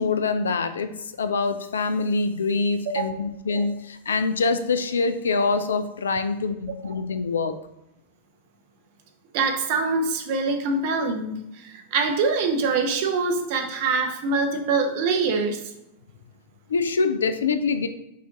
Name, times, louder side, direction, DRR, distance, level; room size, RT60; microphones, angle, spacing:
voice 1, 0.0-7.6 16.7-17.9, left 4 dB, 70° left, 10 dB, 0.4 m, -25 dB
voice 2, 9.3-15.6, right 4 dB, 50° right, 4 dB, 0.8 m, -24 dB
5.5 x 2.5 x 3.6 m, 0.86 s
figure-of-eight pair, 90°, 0 cm